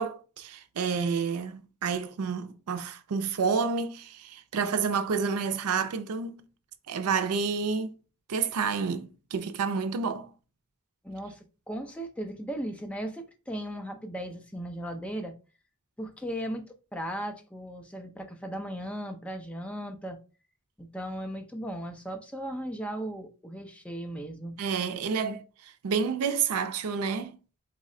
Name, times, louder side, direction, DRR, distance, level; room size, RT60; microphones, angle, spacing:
voice 1, 0.0-6.5 6.9-8.0 8.3-10.3 24.6-27.4, right 5 dB, 80° right, 0.4 m, -29 dB
voice 2, 11.0-15.4 16.0-20.2 20.8-24.6, right 1 dB, 5° left, 0.5 m, -37 dB
4.0 x 2.1 x 3.6 m
head